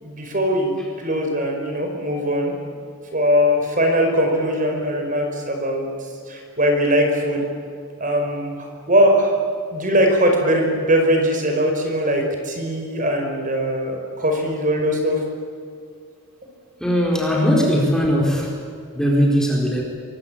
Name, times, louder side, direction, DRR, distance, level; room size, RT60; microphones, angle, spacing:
voice 1, 0.0-2.5 3.1-5.9 6.3-7.4 8.0-9.4 9.7-15.2, equal, 35° right, 3 dB, 5.2 m, -20 dB
voice 2, 16.8-18.5 18.9-19.8, equal, 5° left, -2 dB, 4.5 m, -19 dB
25.0 x 22.5 x 8.8 m, 2.3 s
head